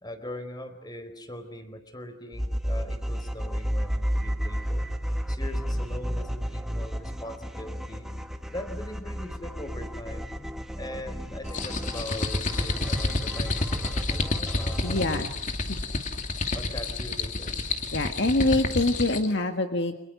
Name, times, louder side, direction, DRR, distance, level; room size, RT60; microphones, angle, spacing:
voice 1, 0.0-8.1 8.5-10.5 10.8-15.0 16.5-17.6, left 1 dB, 20° left, 9 dB, 4.5 m, -41 dB
sound 1, 2.3-15.2, equal, ahead, 2.0 m, -32 dB
sound 2, 11.4-19.3, left 2 dB, 40° left, 2.5 m, -30 dB
voice 2, 14.8-15.3 15.7-15.8 17.9-20.0, left 2 dB, 60° left, 6 dB, 1.8 m, -25 dB
29.5 x 27.0 x 6.6 m, 0.89 s
head